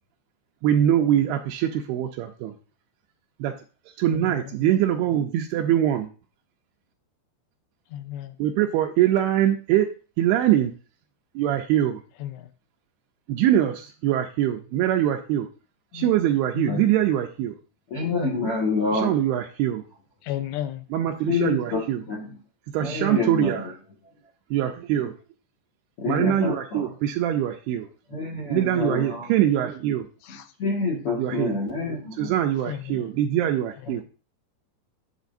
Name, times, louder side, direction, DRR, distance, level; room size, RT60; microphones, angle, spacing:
voice 1, 0.6-2.6 3.4-3.5 4.0-6.1 8.4-9.9 10.2-10.7 11.4-12.0 13.3-15.5 15.9-17.6 18.9-19.8 20.9-22.0 22.7-23.7 24.5-25.2 26.1-27.9 28.5-30.1 31.2-31.6 32.2-34.0, right 11 dB, 80° right, 5 dB, 2.3 m, -23 dB
voice 2, 4.1-4.7 7.9-8.4 12.2-12.5 15.9-16.1 16.5-16.8 20.2-20.9 22.9-23.2 26.1-26.4 30.2-30.5 31.0-31.6 32.7-33.1 33.8-34.0, left 10 dB, 85° left, 10 dB, 2.8 m, -35 dB
voice 3, 17.9-19.1 21.3-22.4 22.8-23.7 26.0-26.9 28.1-29.3 30.3-32.4, left 3 dB, 55° left, -3 dB, 1.6 m, -27 dB
8.2 x 8.1 x 2.5 m, 0.35 s
omnidirectional pair, 5.0 m